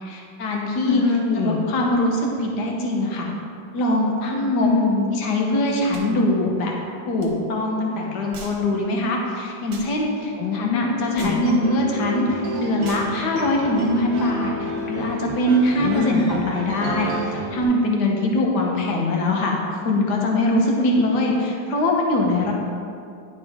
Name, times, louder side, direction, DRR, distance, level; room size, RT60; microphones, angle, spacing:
voice 1, 0.0-1.0 1.4-3.3 3.7-4.7 5.1-6.7 7.1-19.5 19.8-22.5, left 1 dB, 60° left, 0 dB, 1.5 m, -22 dB
voice 2, 0.9-1.7 4.6-5.1 10.4-11.5 15.8-16.3, left 5 dB, 80° left, -1 dB, 1.3 m, -24 dB
sound 1, 5.9-6.1 7.2-7.3 8.3-8.6 9.7-9.9 11.2-11.4 12.8-13.1, right 4 dB, 75° right, 1.7 m, -40 dB
sound 2, 11.0-17.6, right 2 dB, 55° right, 1.3 m, -30 dB
10.0 x 5.1 x 3.6 m, 2.4 s
omnidirectional pair, 2.1 m